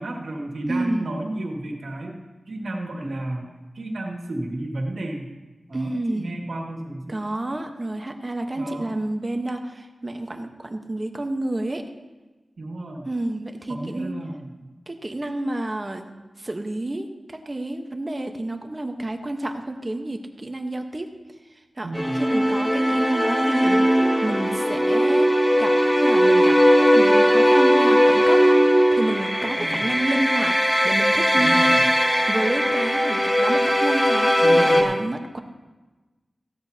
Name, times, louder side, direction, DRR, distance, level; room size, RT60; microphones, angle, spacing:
voice 1, 0.0-2.2 2.5-3.5 3.7-5.3 5.7-7.2 8.6-8.9 12.6-13.1 13.7-14.7 21.8-22.2 29.6-29.9 31.4-31.8 34.4-34.9, right 1 dB, 85° right, 1 dB, 2.0 m, -32 dB
voice 2, 0.7-1.1 5.7-6.4 7.1-11.8 13.1-14.1 14.9-16.1 16.4-21.1 21.8-21.9 22.1-25.3 25.6-28.4 28.9-30.6 30.8-31.8 32.3-35.4, right 1 dB, 30° right, 5 dB, 1.2 m, -29 dB
sound 1, 21.9-34.8, equal, 10° left, 2.1 m, -19 dB
16.5 x 13.0 x 2.9 m, 1.2 s
wide cardioid pair, 75°, 0 cm